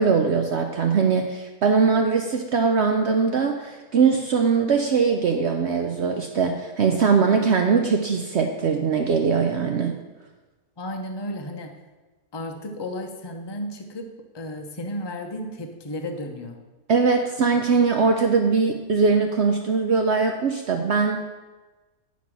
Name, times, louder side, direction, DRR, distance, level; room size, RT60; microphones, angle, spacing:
voice 1, 0.0-10.0 16.9-21.2, right 5 dB, 65° right, 4 dB, 0.7 m, -21 dB
voice 2, 10.8-11.8 12.3-16.6, left 1 dB, 30° left, 3 dB, 0.5 m, -33 dB
9.6 x 4.1 x 6.0 m, 1.2 s
omnidirectional pair, 1.6 m